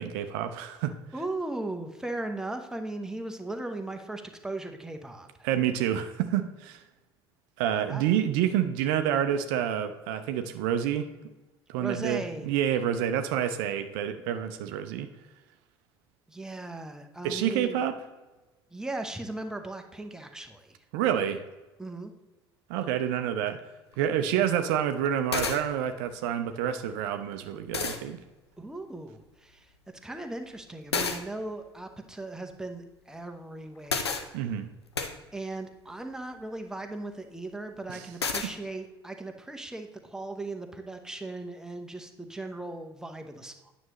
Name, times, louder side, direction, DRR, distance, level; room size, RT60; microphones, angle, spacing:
voice 1, 0.0-0.9 5.4-6.8 7.6-11.1 11.7-15.1 17.2-18.0 20.9-21.4 22.7-23.6 24.0-28.2 34.3-34.7, right 10 dB, 60° right, 8 dB, 0.5 m, -28 dB
voice 2, 1.1-5.5 7.8-8.0 11.8-12.5 16.3-17.8 18.7-20.8 21.8-22.1 28.6-29.7 30.0-34.4 35.3-43.7, right 2 dB, 5° right, 4 dB, 0.9 m, -38 dB
sound 1, 23.9-24.0 25.1-25.2 25.3-25.6 27.2-27.3 27.7-28.0 30.9-31.2 33.9-34.2 35.0-35.1 38.2-38.5, left 5 dB, 85° left, 0.6 m, -29 dB
9.3 x 6.1 x 3.0 m, 1.1 s
figure-of-eight pair, 60°, 13 cm